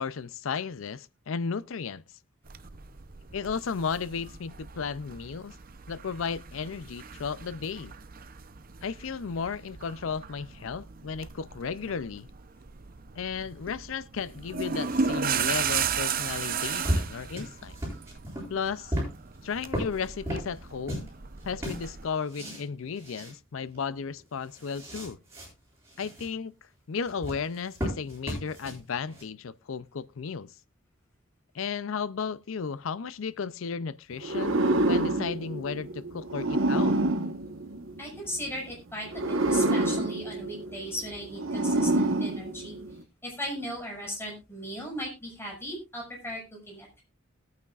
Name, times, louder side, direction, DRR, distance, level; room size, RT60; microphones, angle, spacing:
voice 1, 0.0-2.0 3.3-5.6 5.9-7.9 8.8-12.3 13.2-17.7 18.5-18.9 19.4-21.1 21.4-25.2 26.0-26.5 26.9-30.5 31.5-37.0, left 6 dB, 80° left, 0.5 m, -34 dB
sound 1, 2.5-22.1, right 6 dB, 45° right, 0.7 m, -36 dB
sound 2, 16.1-21.1 21.4-22.7 23.0-23.3 23.7-23.8 24.2-25.5 25.8-26.3 27.0-29.2, equal, 15° right, 7.7 m, -35 dB
sound 3, 34.2-38.4 39.1-43.0, right 2 dB, 80° right, 1.3 m, -27 dB
voice 2, 38.0-42.8 43.2-46.4 46.7-47.0, equal, 10° left, 5.9 m, -37 dB
20.5 x 9.4 x 2.4 m
head